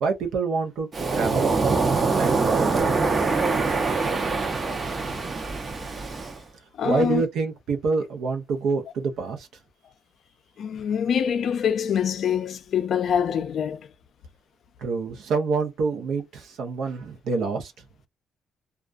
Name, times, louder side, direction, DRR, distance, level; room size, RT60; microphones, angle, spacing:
voice 1, 0.0-1.5 2.2-3.0 6.8-9.5 14.8-17.7, right 4 dB, 80° right, 0.7 m, -27 dB
Waves surf, 0.9-6.4, right 4 dB, 35° right, 0.6 m, -24 dB
voice 2, 6.8-7.2 10.6-13.9, left 8 dB, 65° left, 0.4 m, -25 dB
2.3 x 2.2 x 2.4 m
cardioid pair, 90°, 0 cm